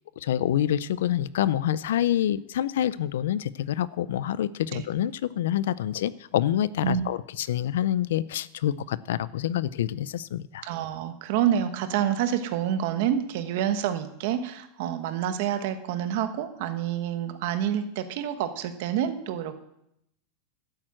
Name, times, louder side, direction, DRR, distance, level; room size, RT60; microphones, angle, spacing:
voice 1, 0.2-10.7, left 11 dB, 80° left, 18 dB, 0.5 m, -27 dB
voice 2, 10.6-19.5, right 10 dB, 55° right, 9 dB, 1.3 m, -28 dB
12.0 x 8.9 x 7.7 m, 0.80 s
supercardioid pair, 165°, 0 cm